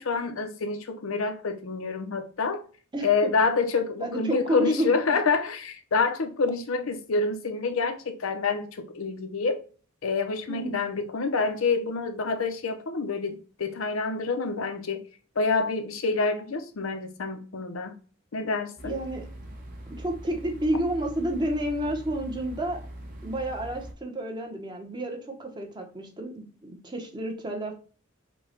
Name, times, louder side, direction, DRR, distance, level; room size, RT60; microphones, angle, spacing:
voice 1, 0.0-2.6 3.0-9.6 10.0-15.0 15.4-18.0 18.3-19.0, left 4 dB, 90° left, 0.7 m, -27 dB
voice 2, 2.9-3.3 4.0-4.9 10.5-10.8 18.8-19.3 20.0-22.8 23.2-27.7, right 1 dB, 20° right, 0.9 m, -30 dB
sound 1, 18.8-23.9, right 1 dB, 40° right, 1.1 m, -42 dB
5.3 x 2.3 x 4.4 m
head